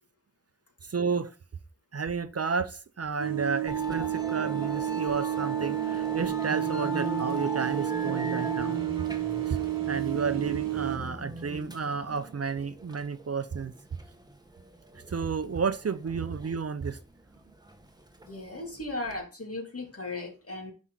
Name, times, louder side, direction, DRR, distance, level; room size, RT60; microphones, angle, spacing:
voice 1, 0.8-1.3 1.9-8.8 9.4-9.6 9.9-13.7 14.9-17.0, right 5 dB, 50° right, 0.6 m, -32 dB
sound 1, 3.2-11.0, right 16 dB, 90° right, 1.0 m, -31 dB
Musical instrument, 3.7-19.2, equal, 10° right, 1.2 m, -39 dB
voice 2, 18.2-20.7, left 2 dB, 45° left, 2.5 m, -37 dB
6.1 x 5.7 x 3.9 m
cardioid pair, 45°, 33 cm